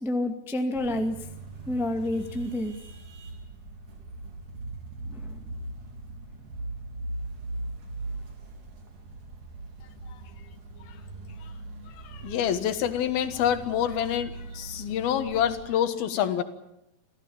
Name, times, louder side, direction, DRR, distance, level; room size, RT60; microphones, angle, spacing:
voice 1, 0.0-1.2 1.7-2.7 5.1-5.4, left 1 dB, ahead, 5 dB, 0.6 m, -29 dB
sound 1, 0.7-15.7, right 2 dB, 60° right, 4.8 m, -40 dB
voice 2, 12.0-16.4, left 9 dB, 85° left, 9 dB, 3.4 m, -27 dB
27.5 x 16.0 x 8.7 m, 0.86 s
omnidirectional pair, 4.2 m